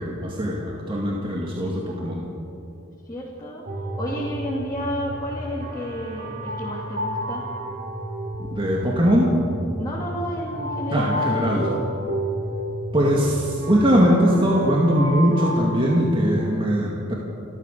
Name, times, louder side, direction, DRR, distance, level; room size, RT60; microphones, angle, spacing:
voice 1, 0.0-2.2 8.5-9.3 10.9-11.7 12.9-17.1, equal, 25° right, -3 dB, 2.2 m, -21 dB
voice 2, 3.0-3.7 3.9-7.5 9.8-11.6, equal, 20° left, -5 dB, 2.7 m, -31 dB
sound 1, 3.7-16.5, right 1 dB, 45° right, 3.6 m, -31 dB
29.5 x 13.0 x 6.8 m, 2.8 s
head